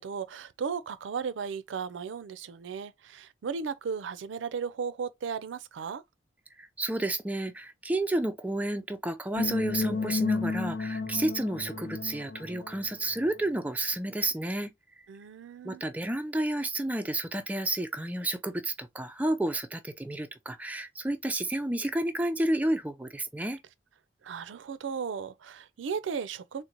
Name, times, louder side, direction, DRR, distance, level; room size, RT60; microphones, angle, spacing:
voice 1, 0.0-6.0 15.1-15.8 24.2-26.6, right 6 dB, 85° right, 0.4 m, -35 dB
voice 2, 6.6-14.7 15.6-23.6, right 1 dB, 10° right, 0.3 m, -31 dB
sound 1, 9.3-13.3, left 4 dB, 80° left, 0.7 m, -32 dB
3.8 x 2.0 x 2.9 m
head